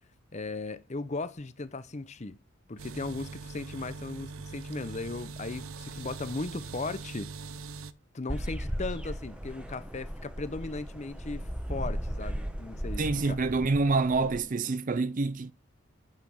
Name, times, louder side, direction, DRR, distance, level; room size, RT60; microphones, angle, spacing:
voice 1, 0.3-2.4 2.7-7.3 8.1-13.4, left 3 dB, 35° left, 0.7 m, -37 dB
sound 1, 2.8-7.9, right 4 dB, 85° right, 0.7 m, -42 dB
sound 2, 8.3-14.4, equal, 5° right, 1.1 m, -36 dB
voice 2, 13.0-15.5, right 3 dB, 40° right, 0.5 m, -27 dB
8.8 x 5.8 x 7.0 m
head